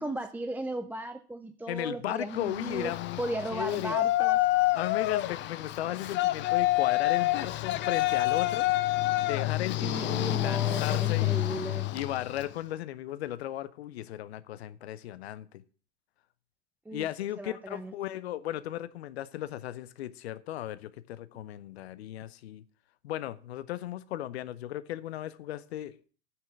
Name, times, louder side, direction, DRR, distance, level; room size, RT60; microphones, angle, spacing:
voice 1, 0.0-2.9 3.2-4.4 9.8-11.9 16.9-17.1 17.4-17.9, right 1 dB, 5° right, 0.5 m, -36 dB
voice 2, 1.7-3.2 3.5-4.0 4.7-8.7 9.2-11.5 11.9-15.6 16.9-22.6 23.0-25.9, left 13 dB, 65° left, 0.9 m, -36 dB
Yell, 2.3-12.5, left 17 dB, 35° left, 0.7 m, -28 dB
9.5 x 5.9 x 7.1 m
figure-of-eight pair, 85°, 34 cm